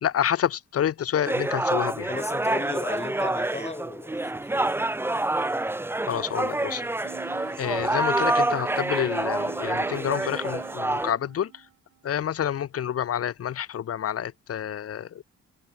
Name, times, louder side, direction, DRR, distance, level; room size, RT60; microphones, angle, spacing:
voice 1, 0.0-2.1 6.1-6.8 7.6-11.6 12.0-15.2, left 9 dB, 50° left, 1.2 m, -28 dB
sound 1, 1.2-11.1, right 2 dB, 10° right, 0.7 m, -27 dB
voice 2, 2.1-4.7, left 3 dB, 20° left, 3.3 m, -35 dB
sound 2, 7.0-12.1, right 15 dB, 85° right, 1.7 m, -43 dB
cardioid pair, 90°, 30 cm